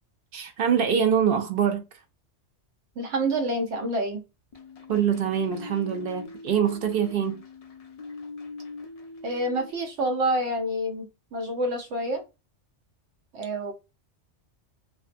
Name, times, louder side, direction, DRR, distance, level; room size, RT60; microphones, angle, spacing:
voice 1, 0.3-1.8 4.9-7.4, right 8 dB, 60° right, 0.7 m, -24 dB
voice 2, 3.0-4.2 9.2-11.1 11.3-12.2 13.3-13.7, right 1 dB, 85° right, 1.0 m, -27 dB
sound 1, 4.5-9.7, left 3 dB, 65° left, 0.3 m, -42 dB
2.5 x 2.3 x 2.4 m
omnidirectional pair, 1.2 m